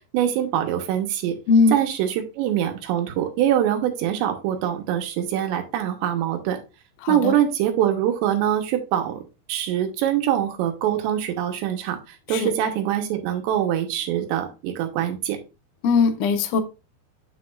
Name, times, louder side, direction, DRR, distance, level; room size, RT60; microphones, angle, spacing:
voice 1, 0.1-1.4 1.7-6.6 7.1-15.4, right 10 dB, 90° right, 3.3 m, -24 dB
voice 2, 7.0-7.3 12.3-12.5 15.8-16.6, left 4 dB, 75° left, 1.8 m, -19 dB
8.9 x 5.8 x 2.5 m
omnidirectional pair, 4.9 m